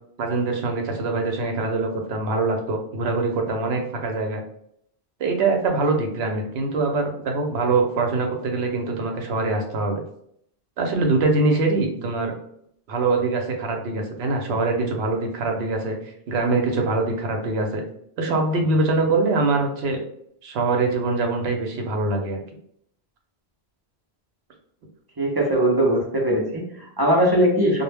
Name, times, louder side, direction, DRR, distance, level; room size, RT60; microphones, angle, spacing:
voice 1, 0.2-4.4 5.2-10.0 10.8-12.3 12.9-16.0 16.3-17.8 18.2-20.0 20.4-22.4, right 3 dB, 75° right, 3 dB, 0.8 m, -23 dB
voice 2, 25.2-27.8, right 1 dB, 30° right, -3 dB, 0.4 m, -20 dB
2.1 x 2.1 x 3.2 m, 0.69 s
omnidirectional pair, 1.1 m